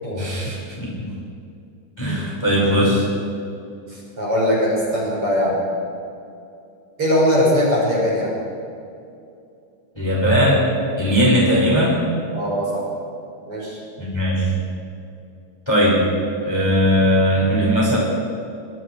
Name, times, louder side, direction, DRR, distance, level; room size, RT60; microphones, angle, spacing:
voice 1, 0.1-1.1 2.0-3.0 10.0-10.6 11.0-12.0 14.0-14.5 15.7-16.0 16.4-18.0, equal, 5° left, -4 dB, 5.8 m, -18 dB
voice 2, 3.9-5.6 7.0-8.3 12.3-12.9 13.5-13.8, equal, 35° right, -4 dB, 6.8 m, -21 dB
26.0 x 23.0 x 4.9 m, 2.6 s
omnidirectional pair, 4.7 m